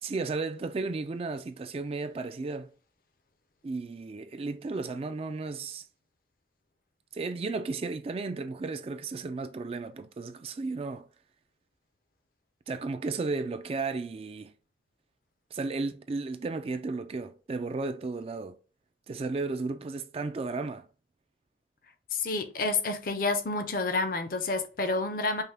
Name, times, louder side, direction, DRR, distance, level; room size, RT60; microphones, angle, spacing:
voice 1, 0.0-2.7 3.6-5.9 7.1-11.1 12.7-14.5 15.5-18.6 19.1-20.9, right 3 dB, 35° right, 0.3 m, -34 dB
voice 2, 22.1-25.4, left 3 dB, 50° left, 0.6 m, -29 dB
5.4 x 2.2 x 3.4 m
head